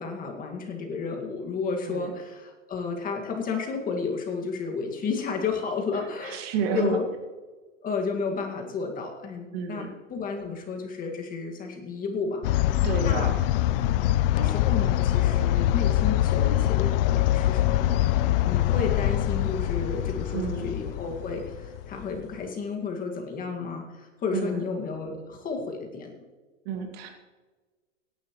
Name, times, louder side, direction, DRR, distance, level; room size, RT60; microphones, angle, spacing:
voice 1, 0.0-6.4 6.7-7.1 7.8-12.4 13.0-13.3 14.3-18.1 18.4-26.2, left 4 dB, 20° left, 2 dB, 2.0 m, -32 dB
voice 2, 6.3-7.0 9.5-9.9 12.8-13.3 20.3-20.7 24.3-24.6 26.7-27.1, right 6 dB, 50° right, 3 dB, 2.2 m, -30 dB
sound 1, 12.4-22.2, left 13 dB, 50° left, 0.5 m, -24 dB
17.5 x 10.5 x 3.1 m, 1.3 s
hypercardioid pair, 135°, 38 cm